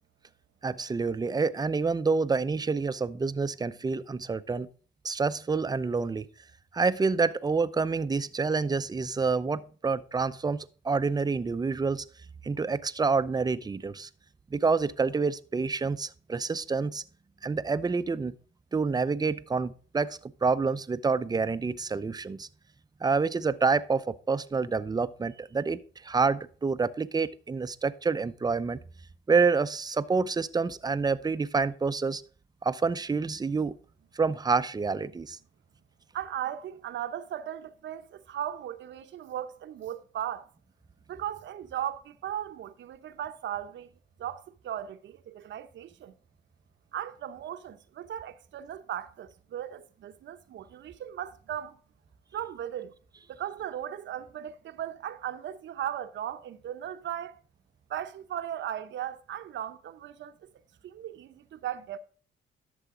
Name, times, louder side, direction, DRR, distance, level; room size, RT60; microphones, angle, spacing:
voice 1, 0.6-4.7 5.0-6.3 6.7-12.0 12.4-14.1 14.5-17.0 17.4-18.3 18.7-22.5 23.0-28.8 29.3-32.2 32.6-33.8 34.1-35.4, right 4 dB, 20° right, 0.6 m, -28 dB
voice 2, 36.1-40.5 41.1-43.9 44.2-46.1 46.9-51.8 52.3-52.9 53.3-57.3 57.9-60.5 60.8-62.0, right 10 dB, 70° right, 0.8 m, -37 dB
11.5 x 7.0 x 3.7 m
cardioid pair, 90°, 20 cm